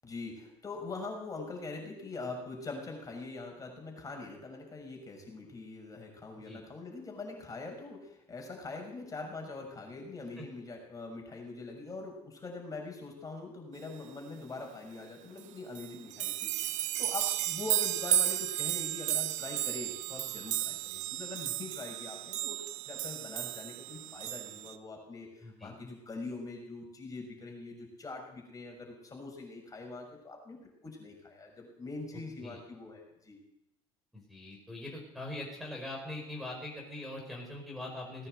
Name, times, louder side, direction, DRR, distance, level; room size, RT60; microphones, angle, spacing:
voice 1, 0.0-16.5 17.0-33.4, left 3 dB, 25° left, 1 dB, 6.3 m, -43 dB
sound 1, 15.4-15.5 15.8-24.8, right 13 dB, 60° right, 0.9 m, -33 dB
voice 2, 25.4-25.8 32.4-32.6 34.1-38.3, left 1 dB, ahead, -3 dB, 5.2 m, -42 dB
19.0 x 9.8 x 7.9 m, 0.82 s
hypercardioid pair, 80°, 14 cm